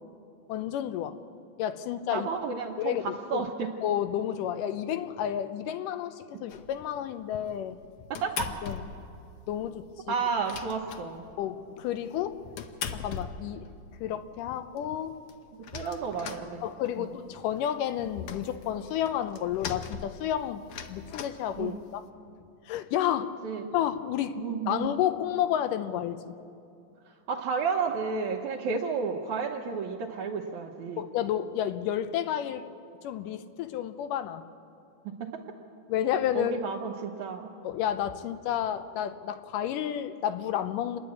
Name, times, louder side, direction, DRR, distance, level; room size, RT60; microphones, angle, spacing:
voice 1, 0.5-1.2 1.6-2.3 2.8-3.1 3.3-3.4 3.8-7.8 8.6-8.8 9.5-10.1 11.4-12.4 12.9-13.7 14.0-15.1 16.6-22.0 22.7-23.3 23.7-24.4 24.7-26.3 31.0-32.6 33.0-34.4 35.9-36.5 37.6-41.0, left 10 dB, 90° left, 10 dB, 2.4 m, -31 dB
voice 2, 2.1-3.7 6.3-6.4 8.1-8.5 10.1-11.2 15.6-16.7 17.0-17.1 21.6-21.8 23.4-23.7 24.4-24.9 27.1-31.0 35.0-35.4 36.3-37.5, right 5 dB, 70° right, -2 dB, 2.3 m, -32 dB
sound 1, 6.5-6.9 7.4-9.2 9.5-9.6 9.8-9.9 10.2-11.5 12.1-13.9 14.4-14.5 14.8-14.9 15.1-17.1 17.5-22.1, left 7 dB, 70° left, 1.4 m, -40 dB
29.0 x 11.0 x 8.4 m, 2.6 s
omnidirectional pair, 3.7 m